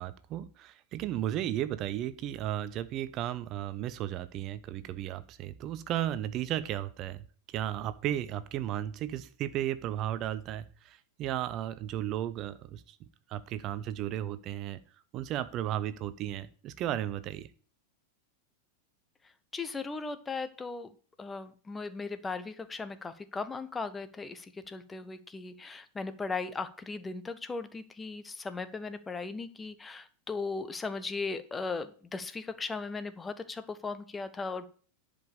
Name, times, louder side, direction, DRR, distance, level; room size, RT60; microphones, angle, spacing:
voice 1, 0.0-13.0 13.3-14.8 15.1-17.5, right 12 dB, 35° right, 0.6 m, -34 dB
voice 2, 19.5-20.9 21.2-34.7, left 4 dB, 15° left, 0.9 m, -37 dB
10.5 x 5.2 x 6.8 m
figure-of-eight pair, 90°, 0 cm